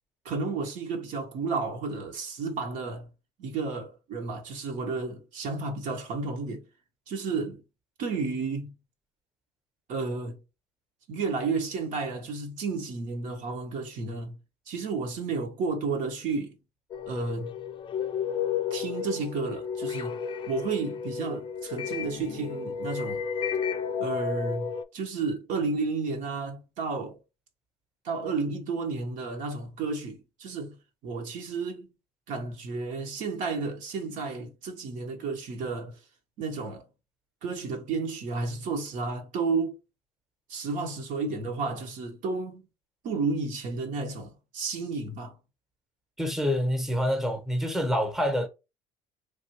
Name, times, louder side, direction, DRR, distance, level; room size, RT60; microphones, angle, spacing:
voice 1, 0.2-3.1 3.4-6.7 7.1-7.6 8.0-8.7 9.9-10.4 11.1-14.4 14.7-16.6 17.1-17.5 18.7-20.2 20.5-23.2 24.0-27.2 28.0-30.8 31.0-31.9 32.3-36.0 36.4-36.8 37.4-39.8 40.5-42.7 43.0-45.3, right 4 dB, 65° right, 1.1 m, -32 dB
sound 1, 16.9-24.8, left 7 dB, 35° left, 0.4 m, -32 dB
voice 2, 46.2-48.5, equal, ahead, 1.0 m, -27 dB
3.4 x 2.5 x 2.9 m
supercardioid pair, 85°, 14 cm